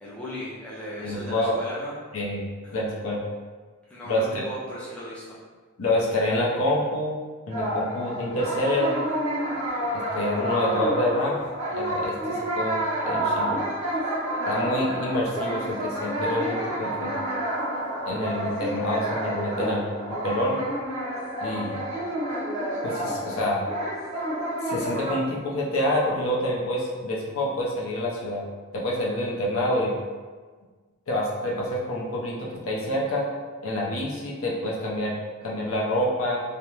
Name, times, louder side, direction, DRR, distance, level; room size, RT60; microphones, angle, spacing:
voice 1, 0.0-2.0 2.6-2.8 3.9-5.4 10.3-10.5, equal, 5° left, -9 dB, 0.4 m, -37 dB
voice 2, 1.0-1.6 2.1-2.4 2.7-3.2 4.0-4.4 5.8-7.2 7.5-9.0 9.9-11.4 11.7-13.6 14.4-17.1 18.1-20.6 21.4-21.8 22.8-23.6 24.6-28.4 28.7-29.9 31.1-33.3 33.6-35.2 35.4-36.4, left 1 dB, 70° left, -3 dB, 0.5 m, -27 dB
sound 1, 7.5-25.1, right 1 dB, 35° right, 0.8 m, -29 dB
2.4 x 2.1 x 3.0 m, 1.4 s
head